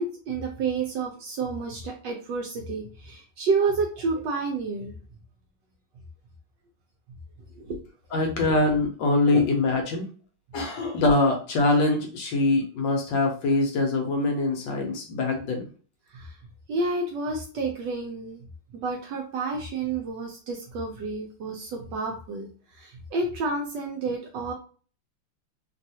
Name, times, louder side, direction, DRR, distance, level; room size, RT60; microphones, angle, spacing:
voice 1, 0.0-4.9 7.5-7.8 9.3-9.4 16.1-16.4 16.7-18.4 18.7-22.5 22.7-24.5, right 3 dB, 75° right, 1 dB, 1.0 m, -30 dB
voice 2, 8.1-10.0 10.5-15.7, left 2 dB, 70° left, 2 dB, 1.2 m, -23 dB
3.2 x 2.3 x 2.7 m, 0.39 s
omnidirectional pair, 2.3 m